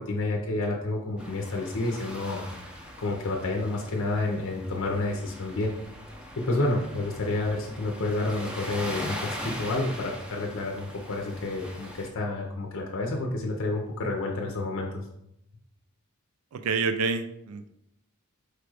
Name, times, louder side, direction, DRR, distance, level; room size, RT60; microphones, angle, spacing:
voice 1, 0.0-2.4 3.0-5.7 6.4-15.0, left 2 dB, 65° left, 0 dB, 0.7 m, -29 dB
sound 1, 1.2-12.1, equal, 5° right, 0.6 m, -41 dB
voice 2, 16.5-17.7, right 4 dB, 70° right, 9 dB, 0.4 m, -28 dB
4.7 x 2.4 x 4.7 m, 0.81 s
head